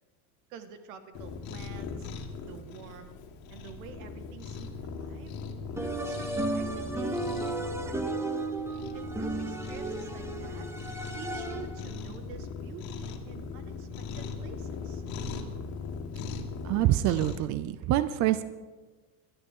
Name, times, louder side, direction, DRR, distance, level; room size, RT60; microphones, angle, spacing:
voice 1, 0.5-2.1 2.4-3.1 3.5-5.4 6.0-7.3 7.5-8.2 8.9-10.7 11.1-13.9 14.2-15.0, right 7 dB, 75° right, 8 dB, 1.8 m, -47 dB
Cat, 1.1-17.4, left 5 dB, 55° left, 2.3 m, -39 dB
sound 1, 5.8-11.8, right 2 dB, 5° right, 1.0 m, -34 dB
voice 2, 16.6-18.4, right 13 dB, 45° right, 13 dB, 0.6 m, -26 dB
21.0 x 12.5 x 3.7 m, 1.3 s
supercardioid pair, 130°, 42 cm